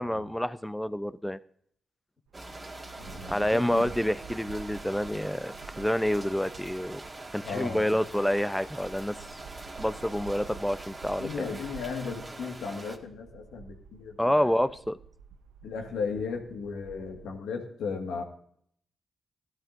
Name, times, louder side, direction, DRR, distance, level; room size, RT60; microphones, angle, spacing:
voice 1, 0.0-1.4 3.3-7.0 7.3-9.4 9.8-11.6 14.2-15.0, equal, 5° left, 14 dB, 0.7 m, -28 dB
sound 1, 2.3-13.0, right 2 dB, 35° right, 1.9 m, -43 dB
sound 2, 2.3-17.3, right 7 dB, 90° right, 0.6 m, -50 dB
voice 2, 3.0-3.9 7.4-8.2 11.2-14.6 15.6-18.2, left 5 dB, 85° left, 2 dB, 1.8 m, -36 dB
16.5 x 12.5 x 2.6 m, 0.65 s
supercardioid pair, 45°, 0 cm